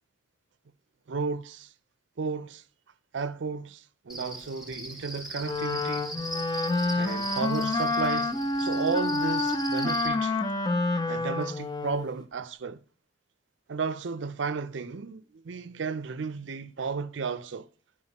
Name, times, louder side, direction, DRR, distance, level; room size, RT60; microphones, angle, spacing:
voice 1, 1.1-1.7 2.2-2.6 3.1-6.1 7.0-10.4 11.1-12.8 13.7-17.7, right 5 dB, 75° right, 0.5 m, -33 dB
Cricket, 4.1-10.1, right 1 dB, 5° right, 1.1 m, -39 dB
Wind instrument woodwind instrument, 5.4-12.1, left 2 dB, 20° left, 0.5 m, -28 dB
11.0 x 4.9 x 2.9 m
head